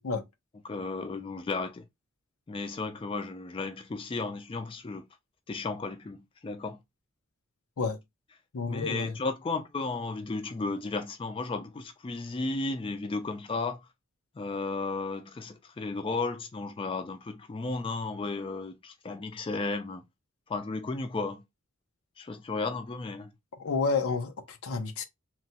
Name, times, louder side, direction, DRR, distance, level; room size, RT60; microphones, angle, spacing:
voice 1, 0.6-1.8 2.5-5.0 5.5-6.8 8.7-13.8 14.4-20.0 20.5-21.4 22.2-23.3, left 3 dB, 25° left, 0.3 m, -34 dB
voice 2, 8.5-9.1 23.6-25.0, left 4 dB, 90° left, 0.6 m, -30 dB
3.0 x 2.2 x 2.8 m
head